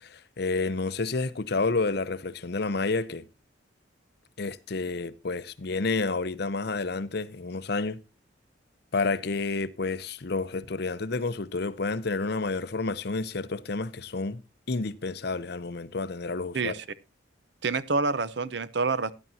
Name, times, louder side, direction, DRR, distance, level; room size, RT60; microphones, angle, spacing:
voice 1, 0.0-3.2 4.4-8.0 8.9-14.4 14.7-16.7, left 3 dB, 55° left, 0.7 m, -30 dB
voice 2, 16.5-16.8 17.6-19.1, right 4 dB, 60° right, 0.7 m, -27 dB
16.5 x 11.0 x 2.8 m
head